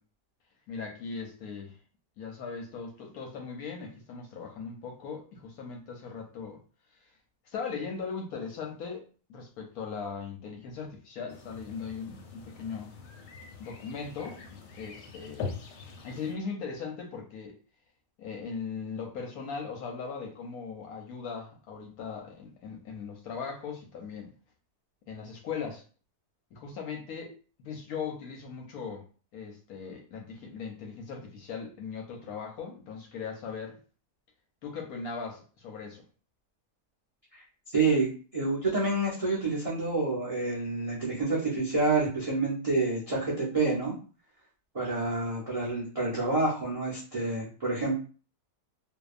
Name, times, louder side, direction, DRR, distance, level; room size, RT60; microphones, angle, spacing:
voice 1, 0.7-1.8 2.2-6.6 7.5-9.0 9.3-12.9 13.6-14.3 14.8-15.6 16.0-17.6 18.2-24.3 25.1-25.8 26.5-27.3 27.6-29.0 29.3-33.8 34.6-36.0, left 5 dB, 70° left, 0 dB, 1.0 m, -39 dB
sound 1, 11.3-16.4, left 5 dB, 85° left, 1.2 m, -43 dB
voice 2, 37.7-43.9 44.7-48.0, right 3 dB, 60° right, -6 dB, 0.3 m, -28 dB
2.7 x 2.2 x 2.4 m, 0.38 s
omnidirectional pair, 1.8 m